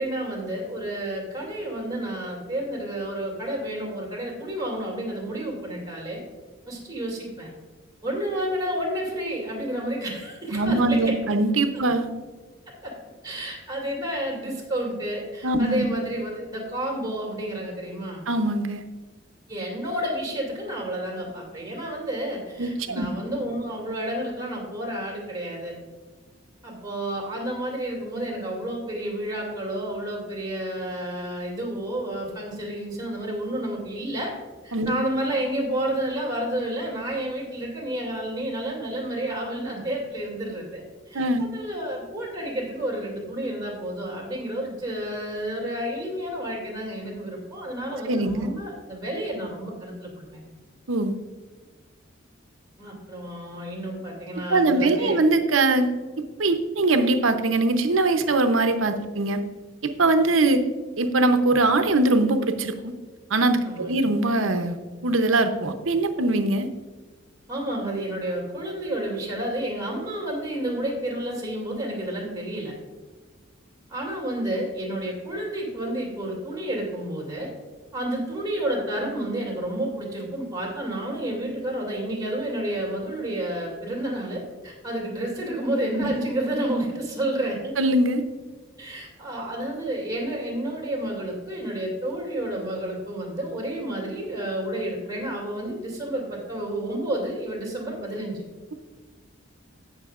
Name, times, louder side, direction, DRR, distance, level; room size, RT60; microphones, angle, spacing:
voice 1, 0.0-6.2 6.7-7.5 8.0-11.1 11.7-11.8 12.8-12.9 13.2-18.2 19.5-25.7 26.6-34.3 34.6-50.5 52.8-55.2 63.6-64.0 67.5-72.7 73.9-77.5 77.9-87.7 88.8-98.4, right 1 dB, 20° right, -2 dB, 2.5 m, -30 dB
voice 2, 10.5-12.1 15.4-15.8 18.3-18.8 22.6-23.1 34.7-34.9 41.1-41.5 48.1-48.4 50.9-51.1 54.5-55.9 56.4-59.4 59.8-60.6 61.0-62.9 63.3-64.8 65.0-66.7 86.0-86.2 87.8-88.2, right 2 dB, 90° right, 7 dB, 0.8 m, -22 dB
17.0 x 6.2 x 2.5 m, 1.4 s
head